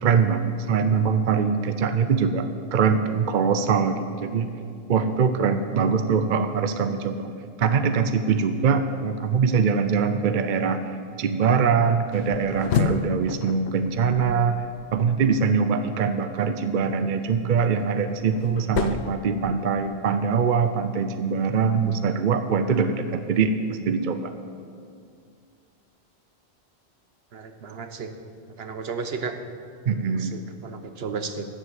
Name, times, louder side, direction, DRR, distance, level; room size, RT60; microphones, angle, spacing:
voice 1, 0.0-4.5 4.9-7.3 7.6-10.8 11.2-14.7 14.9-24.3 29.9-30.4, right 6 dB, 55° right, 9 dB, 0.7 m, -23 dB
sound 1, 12.1-15.3 17.5-20.0, left 7 dB, 90° left, 1.0 m, -31 dB
voice 2, 27.3-28.1 28.6-29.3 30.2-31.5, right 5 dB, 70° right, 8 dB, 1.1 m, -33 dB
12.5 x 7.8 x 8.1 m, 2.3 s
omnidirectional pair, 1.1 m